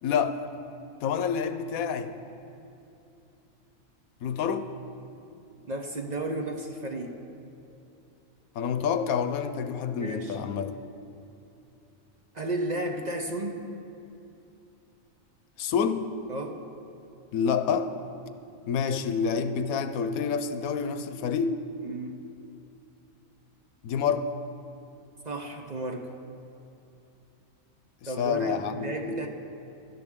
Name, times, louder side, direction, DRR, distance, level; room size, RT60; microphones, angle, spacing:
voice 1, 0.0-0.4 1.0-2.1 4.2-4.7 8.5-10.7 15.6-16.1 17.3-17.9 18.7-21.6 23.8-24.3 28.0-29.3, left 6 dB, 90° left, 10 dB, 1.1 m, -28 dB
voice 2, 5.7-7.2 10.0-10.4 12.3-13.6 16.3-16.6 21.8-22.2 25.2-26.1 28.0-29.3, right 2 dB, 40° right, 3 dB, 0.8 m, -33 dB
17.0 x 12.5 x 3.6 m, 2.7 s
omnidirectional pair, 1.4 m